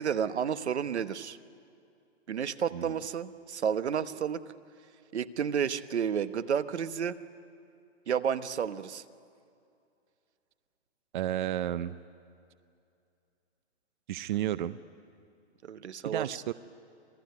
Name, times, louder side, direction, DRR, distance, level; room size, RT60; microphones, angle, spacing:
voice 1, 0.0-1.4 2.3-4.4 5.1-7.2 8.1-9.0 15.6-16.3, right 7 dB, 80° right, 12 dB, 1.1 m, -31 dB
voice 2, 11.1-12.0 14.1-14.8 16.0-16.5, right 12 dB, 45° right, 15 dB, 0.6 m, -32 dB
27.5 x 18.0 x 9.5 m, 2.5 s
hypercardioid pair, 145°, 33 cm